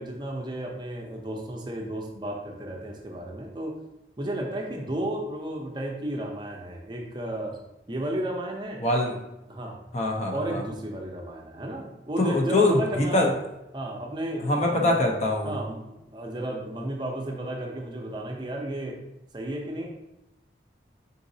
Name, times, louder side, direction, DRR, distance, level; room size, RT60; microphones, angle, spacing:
voice 1, 0.0-3.7 4.2-7.6 7.9-8.8 9.5-9.8 10.3-13.4 13.7-14.9 15.4-19.0 19.3-19.9, right 1 dB, 25° right, 0 dB, 0.5 m, -33 dB
voice 2, 8.8-9.2 9.9-10.6 12.2-13.3 14.4-15.5, left 2 dB, 40° left, 1 dB, 0.6 m, -23 dB
3.9 x 3.8 x 2.7 m, 0.92 s
head